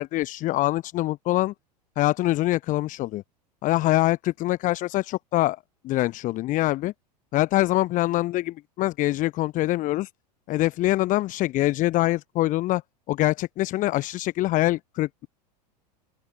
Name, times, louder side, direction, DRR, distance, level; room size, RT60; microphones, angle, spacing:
voice 1, 0.0-1.5 2.0-3.2 3.6-5.6 5.8-6.9 7.3-10.1 10.5-12.8 13.1-15.3, left 16 dB, 40° left, 1.1 m, -24 dB
open air
figure-of-eight pair, 85°, 21 cm